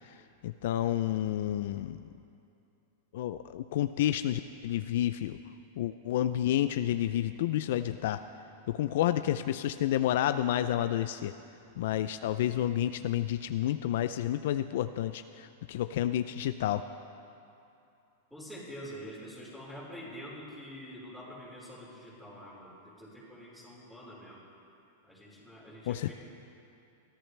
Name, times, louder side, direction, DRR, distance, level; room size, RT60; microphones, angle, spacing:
voice 1, 0.4-2.0 3.1-5.4 5.8-8.2 8.7-11.3 11.8-16.9 25.9-26.1, left 12 dB, 65° left, 10 dB, 0.4 m, -30 dB
voice 2, 18.3-24.4 25.0-26.1, equal, ahead, -8 dB, 4.4 m, -46 dB
22.0 x 14.0 x 3.4 m, 2.7 s
supercardioid pair, 145°, 0 cm